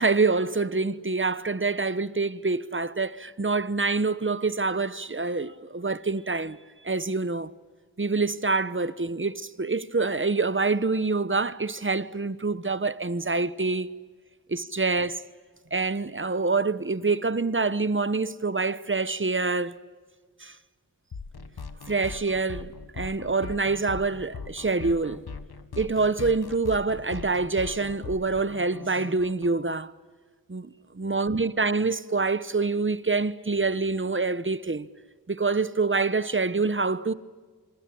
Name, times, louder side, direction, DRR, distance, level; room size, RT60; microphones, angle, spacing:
voice 1, 0.0-6.6 6.8-7.5 8.0-13.9 14.5-15.3 15.7-19.8 20.4-20.6 21.9-25.2 25.8-29.9 30.5-34.9 35.3-37.1, right 3 dB, 30° right, 1.1 m, -26 dB
sound 1, 21.1-29.5, left 5 dB, 85° left, 1.7 m, -40 dB
27.0 x 25.5 x 8.7 m
wide cardioid pair, 70°, 37 cm